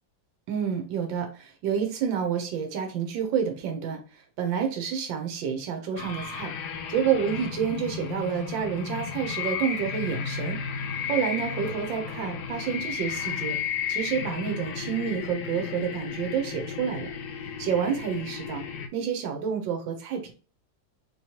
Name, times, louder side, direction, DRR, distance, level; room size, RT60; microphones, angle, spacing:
voice 1, 0.5-6.5 6.9-10.6 11.1-17.1 17.4-18.6 18.9-20.3, right 7 dB, 85° right, 4 dB, 1.5 m, -29 dB
sound 1, 6.0-18.9, left 7 dB, 70° left, 1.2 m, -34 dB
4.0 x 3.0 x 2.8 m, 0.38 s
omnidirectional pair, 2.0 m